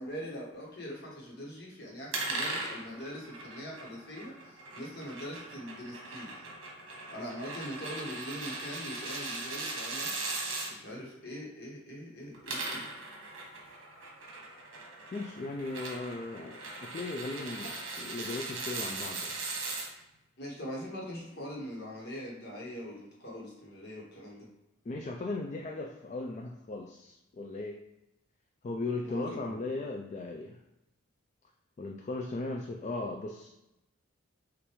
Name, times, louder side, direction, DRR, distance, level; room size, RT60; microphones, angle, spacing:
voice 1, 0.0-6.5 7.1-10.1 10.7-12.9 17.6-17.7 20.4-24.5 29.0-29.6, equal, 50° left, -3 dB, 1.3 m, -42 dB
sound 1, 2.1-10.7 12.2-19.9, right 3 dB, 70° right, 1.2 m, -39 dB
voice 2, 15.1-19.4 24.9-27.8 28.6-30.6 31.8-33.5, left 2 dB, 35° left, 2 dB, 0.3 m, -37 dB
6.3 x 2.5 x 3.1 m, 0.89 s
head